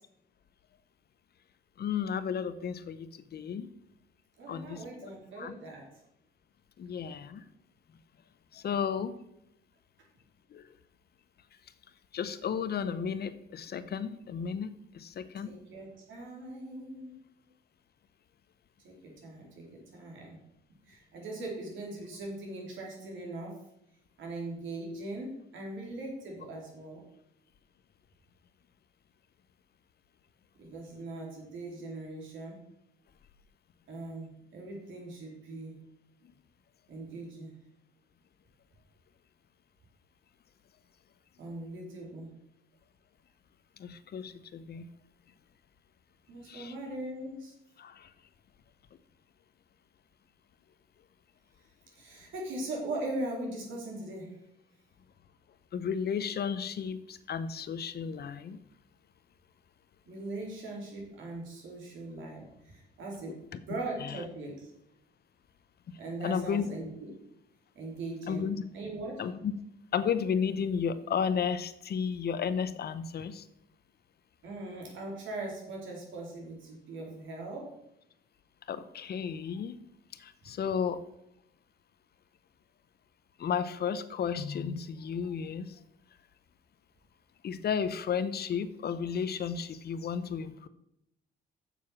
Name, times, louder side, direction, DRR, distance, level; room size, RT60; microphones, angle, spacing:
voice 1, 1.8-3.7 4.5-5.1 5.4-5.5 6.8-7.4 8.5-9.1 10.5-10.7 12.1-15.5 43.8-44.9 46.5-46.7 47.8-48.1 55.7-58.6 63.3-63.4 64.0-64.2 66.2-66.7 68.3-68.6 69.2-69.5 69.9-73.4 78.7-79.8 80.2-81.0 83.4-85.8 87.4-90.7, left 7 dB, 55° left, 13 dB, 0.8 m, -33 dB
voice 2, 4.4-5.9 15.4-17.2 18.8-20.4 20.9-23.6 24.2-27.0 30.6-32.6 33.9-35.8 36.9-37.5 41.4-42.3 46.3-47.5 51.9-54.3 60.1-63.3 63.7-64.7 66.0-67.1 67.8-68.5 68.7-69.2 74.4-77.7, right 2 dB, 75° right, -1 dB, 3.7 m, -40 dB
7.4 x 6.9 x 6.0 m, 0.81 s
cardioid pair, 90°, 20 cm